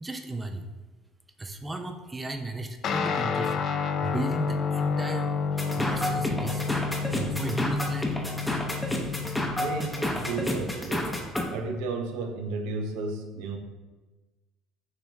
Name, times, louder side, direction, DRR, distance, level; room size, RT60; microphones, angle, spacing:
voice 1, 0.0-0.7 1.4-3.5 4.0-5.3 5.8-6.7 7.2-8.2 9.0-9.2 10.0-10.1, right 2 dB, 15° right, 6 dB, 0.4 m, -34 dB
Guitar, 2.8-10.5, left 5 dB, 50° left, 0.4 m, -30 dB
sound 1, 5.6-11.4, left 1 dB, 10° left, 0.8 m, -30 dB
voice 2, 9.6-11.2 11.5-13.6, right 3 dB, 80° right, 4 dB, 0.5 m, -33 dB
6.3 x 3.1 x 2.7 m, 1.2 s
supercardioid pair, 85°, 0 cm